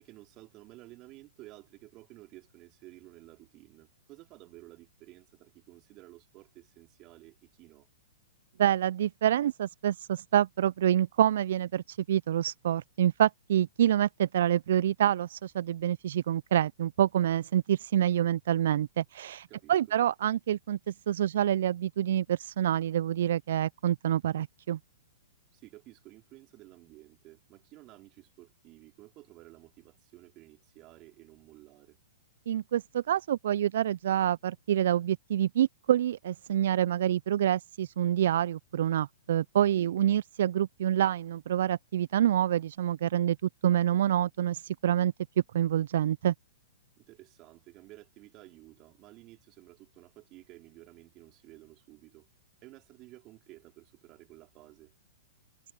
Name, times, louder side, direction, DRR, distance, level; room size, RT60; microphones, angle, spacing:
voice 1, 0.0-7.9 19.5-19.7 25.5-32.0 39.7-39.9 47.0-52.3 52.6-54.9, right 19 dB, 35° right, 4.5 m, -53 dB
voice 2, 8.6-24.8 32.5-43.4 43.6-45.1 45.5-46.3, right 11 dB, 55° right, 0.7 m, -27 dB
figure-of-eight pair, 110°, 0 cm